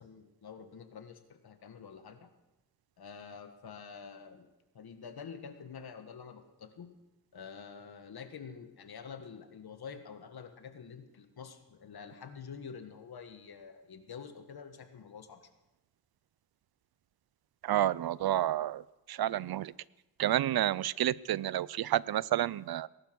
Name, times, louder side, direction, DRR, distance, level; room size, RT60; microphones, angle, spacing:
voice 1, 0.0-2.3 3.0-4.5 4.7-6.9 7.3-15.5, left 6 dB, 80° left, 7 dB, 1.7 m, -47 dB
voice 2, 17.6-18.8 19.1-19.7 20.2-22.9, right 12 dB, 80° right, 21 dB, 0.5 m, -30 dB
19.0 x 11.5 x 6.1 m, 1.0 s
wide cardioid pair, 85°, 37 cm